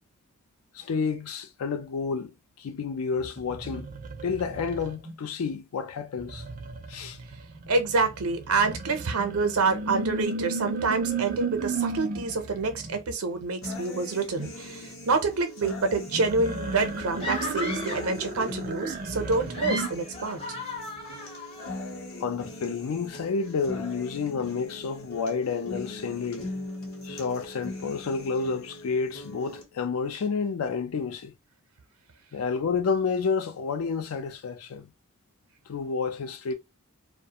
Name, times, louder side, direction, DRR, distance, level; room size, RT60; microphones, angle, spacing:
voice 1, 0.7-3.9 4.2-6.4 6.9-7.2 22.2-26.5 27.0-31.3 32.3-34.9 35.7-36.5, left 5 dB, 85° left, 0.4 m, -30 dB
sound 1, 3.2-5.1 6.2-13.0 16.1-19.9, right 3 dB, 40° right, 0.4 m, -35 dB
voice 2, 7.7-20.4, right 3 dB, 85° right, 0.6 m, -27 dB
sound 2, 13.6-29.6, left 2 dB, 70° left, 0.9 m, -40 dB
sound 3, 17.2-18.2 19.3-21.7, left 2 dB, 25° left, 0.6 m, -36 dB
2.4 x 2.1 x 2.8 m
head